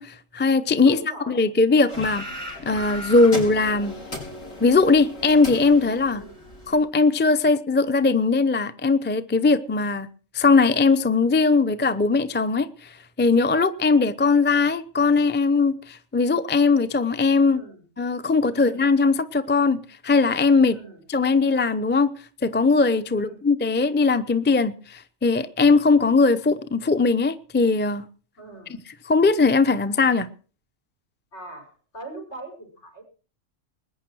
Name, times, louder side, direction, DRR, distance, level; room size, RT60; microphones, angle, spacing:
voice 1, 0.0-1.0 1.3-2.2 2.6-3.9 4.6-6.2 6.7-10.1 10.3-12.9 13.2-17.6 18.0-19.8 20.0-20.8 21.1-22.1 22.4-28.0 29.0-30.3, left 4 dB, 10° left, 0.6 m, -20 dB
voice 2, 0.8-1.4 6.1-6.4 17.5-17.8 18.5-18.8 20.7-21.0 23.1-23.4 28.4-28.8 31.3-31.7 31.9-33.0, right 2 dB, 60° left, 5.7 m, -40 dB
sound 1, 1.9-6.8, left 1 dB, 85° left, 5.7 m, -36 dB
20.5 x 9.6 x 6.2 m
omnidirectional pair, 1.3 m